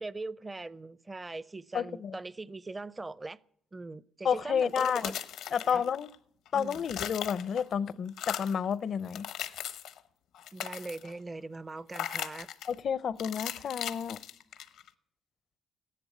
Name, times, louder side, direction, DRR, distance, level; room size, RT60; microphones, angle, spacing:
voice 1, 0.0-3.4 3.7-5.2 5.5-5.8 6.5-6.8 10.5-12.5, right 3 dB, 20° right, 0.5 m, -41 dB
voice 2, 1.7-2.2 4.2-5.1 5.5-6.1 6.5-9.3 12.7-14.2, left 7 dB, 60° left, 0.5 m, -30 dB
sound 1, 4.6-6.2 6.5-7.7 8.1-8.6 9.0-10.0 10.3-11.2 11.9-12.7 13.2-14.9, left 10 dB, 85° left, 0.9 m, -39 dB
16.0 x 11.0 x 8.4 m
cardioid pair, 90°, 0 cm